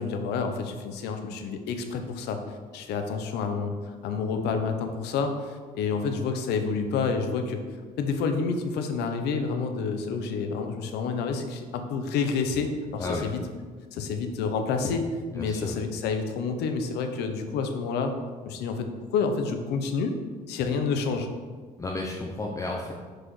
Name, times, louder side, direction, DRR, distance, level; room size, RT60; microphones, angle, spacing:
voice 1, 0.0-7.6 8.0-13.4 13.9-15.0 15.3-18.1 18.5-20.1 20.5-21.3, left 5 dB, 80° left, 6 dB, 0.7 m, -29 dB
voice 2, 15.4-15.8 21.8-22.9, left 2 dB, 20° left, -2 dB, 0.5 m, -32 dB
6.1 x 4.9 x 3.1 m, 1.5 s
cardioid pair, 110°, 17 cm